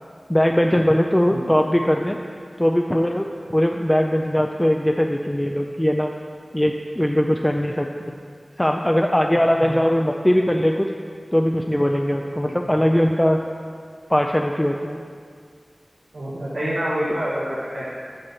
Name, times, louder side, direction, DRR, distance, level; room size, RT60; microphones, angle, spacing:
voice 1, 0.3-2.2 2.6-6.1 6.5-8.1 8.6-10.9 11.3-13.4 14.1-15.0, equal, 15° left, 2 dB, 0.4 m, -20 dB
voice 2, 9.6-9.9 12.3-12.6 16.1-17.8, equal, 90° right, -9 dB, 1.6 m, -27 dB
8.1 x 4.2 x 6.9 m, 2.1 s
wide cardioid pair, 40°, 0 cm